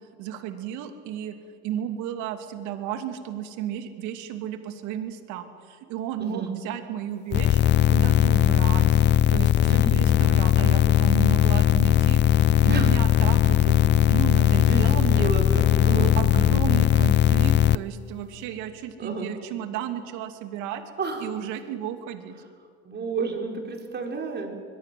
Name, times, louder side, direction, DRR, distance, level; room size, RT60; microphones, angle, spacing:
voice 1, 0.2-1.4 1.6-7.6 7.9-8.9 9.3-12.2 12.6-15.3 15.8-20.8 21.2-22.3, right 10 dB, 70° right, 7 dB, 2.8 m, -33 dB
voice 2, 6.2-6.5 9.7-10.0 12.7-12.9 14.6-16.1 19.0-19.3 21.0-21.3 22.8-24.5, right 4 dB, 35° right, 2 dB, 5.1 m, -31 dB
sound 1, 7.3-17.8, left 11 dB, 35° left, 0.6 m, -19 dB
24.0 x 21.5 x 7.9 m, 2.1 s
supercardioid pair, 95°, 31 cm